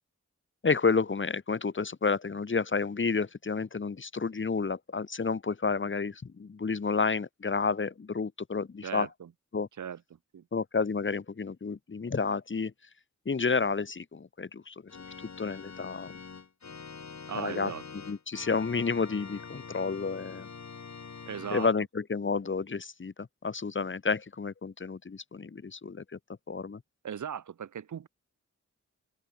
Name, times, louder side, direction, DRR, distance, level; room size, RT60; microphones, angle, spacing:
voice 1, 0.6-9.1 9.5-9.7 10.5-12.7 13.2-14.7 15.4-16.1 17.3-20.5 21.5-26.2 26.5-26.8, left 4 dB, 45° left, 1.3 m, -30 dB
voice 2, 8.8-9.3 9.8-10.0 10.3-10.4 17.3-17.8 21.3-21.7 27.0-28.1, right 8 dB, 90° right, 0.9 m, -37 dB
Organ, 14.9-21.7, left 5 dB, 70° left, 4.5 m, -45 dB
wide cardioid pair, 105°, 29 cm